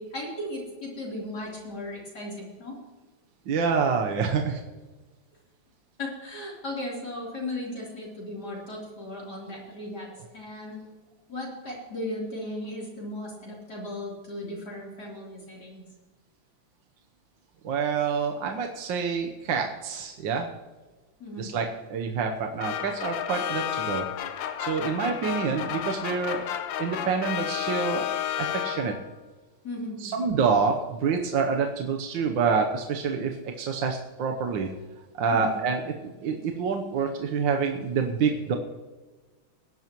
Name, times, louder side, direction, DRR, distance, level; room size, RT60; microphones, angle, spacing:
voice 1, 0.0-2.8 6.0-10.8 11.3-15.8 21.2-21.5 29.6-30.2 35.3-35.6, left 1 dB, 55° left, -4 dB, 4.1 m, -36 dB
voice 2, 3.5-4.6 17.6-20.5 21.4-24.1 24.6-26.4 26.8-28.0 28.4-28.9 30.0-34.7 35.2-38.5, right 5 dB, 70° right, 3 dB, 1.6 m, -27 dB
sound 1, 22.6-29.1, left 10 dB, 75° left, 1.5 m, -31 dB
20.5 x 11.0 x 3.0 m, 1.2 s
omnidirectional pair, 2.1 m